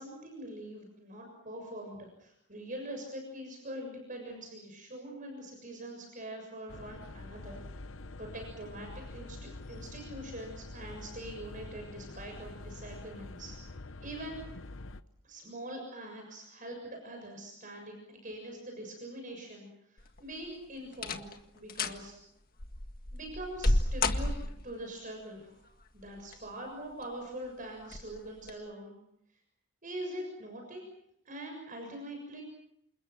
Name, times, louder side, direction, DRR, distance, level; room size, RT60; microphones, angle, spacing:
voice 1, 0.0-7.6 8.2-13.5 14.0-14.5 15.2-22.2 23.1-24.3 24.6-25.6 25.9-29.0 29.8-30.8 31.3-32.4, right 1 dB, 40° right, 2 dB, 6.9 m, -43 dB
sound 1, 6.7-15.0, left 2 dB, 65° left, 1.0 m, -46 dB
sound 2, 20.0-20.4 20.9-21.4 21.7-22.0 22.6-24.8 26.0-26.6 27.0-27.1 27.9-28.1 28.4-28.5, left 2 dB, 45° left, 1.7 m, -31 dB
29.0 x 28.0 x 6.1 m, 0.75 s
head